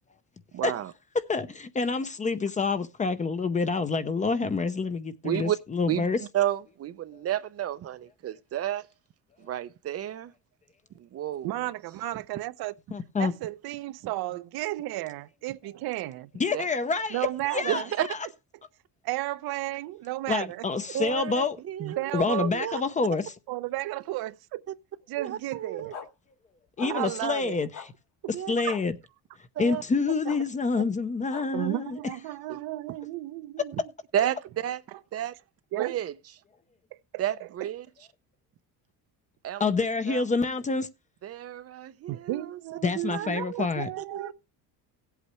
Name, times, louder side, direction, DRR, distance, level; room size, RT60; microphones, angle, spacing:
voice 1, 0.5-0.9 5.2-5.6 5.9-6.1 6.3-8.9 9.4-10.3 11.0-11.5 16.5-16.6 17.7-18.1 20.9-22.0 22.3-22.8 25.2-25.9 26.8-27.0 28.3-28.5 29.6-29.8 32.5-32.6 34.1-34.8 35.1-35.4 35.8-36.1 37.2-37.9 39.4-39.6 40.1-40.2 41.2-42.6 43.1-43.3 43.6-43.7 44.0-44.3, right 12 dB, 40° right, 0.5 m, -31 dB
voice 2, 1.1-6.2 12.9-13.3 16.3-18.2 20.3-21.6 22.1-23.3 26.8-27.7 28.5-28.9 29.6-32.0 39.6-40.9 42.8-43.9, left 4 dB, 20° left, 0.6 m, -27 dB
voice 3, 11.4-12.7 13.2-16.3 17.1-17.9 19.0-20.6 22.0-22.5 23.5-24.6 25.1-26.0 26.9-27.6 28.6-28.8 31.5-33.7 34.9-35.0 35.7-36.0 37.1-37.2 42.1-44.3, right 16 dB, 70° right, 0.8 m, -33 dB
sound 1, 25.9-26.1 26.8-26.9 27.7-27.9 28.7-28.8 30.2-30.4 31.3-31.4, left 6 dB, 60° left, 2.6 m, -39 dB
17.0 x 8.2 x 3.1 m
cardioid pair, 165°, 38 cm